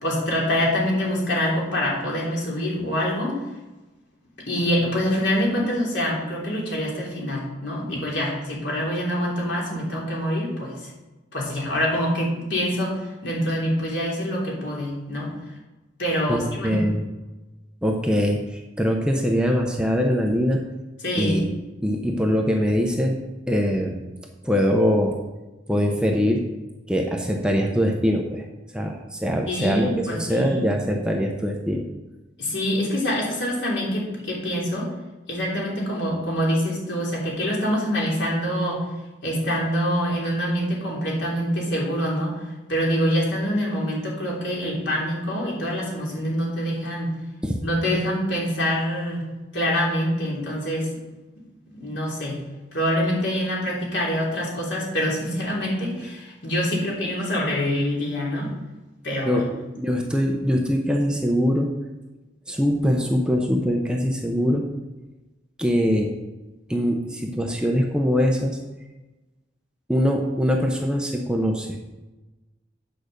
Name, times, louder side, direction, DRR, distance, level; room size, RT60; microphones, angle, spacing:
voice 1, 0.0-3.4 4.5-10.9 11.3-15.3 16.0-16.8 21.0-21.4 29.5-30.6 32.4-34.9 35.3-38.8 39.2-42.4 42.7-47.1 47.6-49.2 49.5-50.9 51.8-52.4 52.7-58.5 59.0-59.4, equal, 70° left, -4 dB, 3.1 m, -25 dB
voice 2, 16.3-17.1 17.8-20.6 21.2-21.5 21.8-23.2 23.5-24.0 24.4-25.2 25.7-26.4 26.9-28.5 28.7-31.9 47.4-47.6 59.2-61.7 62.5-64.6 65.6-66.1 66.7-68.6 69.9-71.8, equal, 5° right, 1 dB, 0.7 m, -22 dB
8.9 x 5.1 x 6.6 m, 1.1 s
head